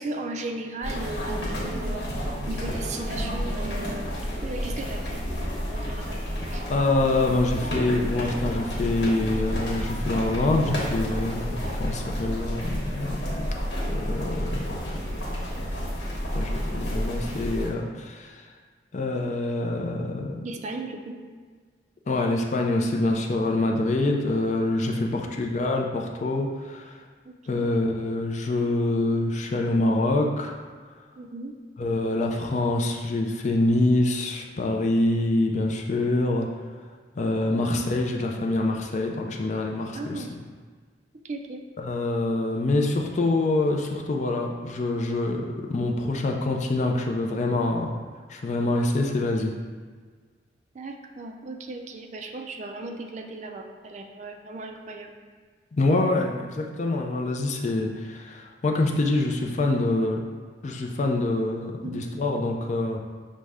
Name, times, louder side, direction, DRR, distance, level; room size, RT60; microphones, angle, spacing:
voice 1, 0.0-4.1 4.4-5.2 5.7-6.2 6.5-6.6 20.4-21.2 24.9-25.3 27.3-27.7 31.2-31.5 37.5-37.8 39.9-40.3 41.1-41.6 50.7-55.1 61.8-62.1, right 2 dB, 40° right, 4 dB, 0.3 m, -37 dB
sound 1, 0.8-17.7, equal, 75° left, 1.2 m, -30 dB
voice 2, 6.7-13.5 13.9-14.7 15.1-15.2 16.3-18.4 18.9-20.5 22.1-27.0 27.5-30.5 31.8-36.5 37.2-40.2 41.8-45.4 45.7-48.0 48.3-49.5 55.7-60.2 60.6-63.0, left 2 dB, 40° left, 1 dB, 0.4 m, -25 dB
6.2 x 2.1 x 3.4 m, 1.5 s
head